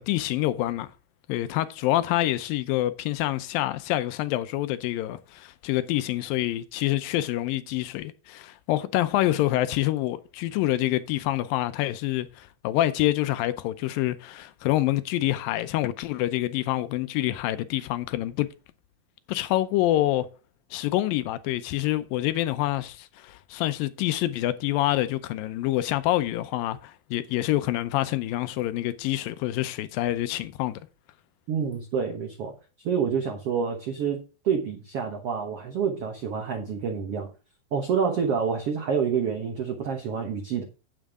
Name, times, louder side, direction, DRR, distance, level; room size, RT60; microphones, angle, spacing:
voice 1, 0.1-0.9 1.3-18.5 19.3-20.3 20.7-30.8, left 15 dB, 80° left, 2.2 m, -26 dB
voice 2, 31.5-37.3 37.7-40.6, right 6 dB, 65° right, 1.5 m, -28 dB
8.9 x 8.4 x 3.6 m
omnidirectional pair, 4.4 m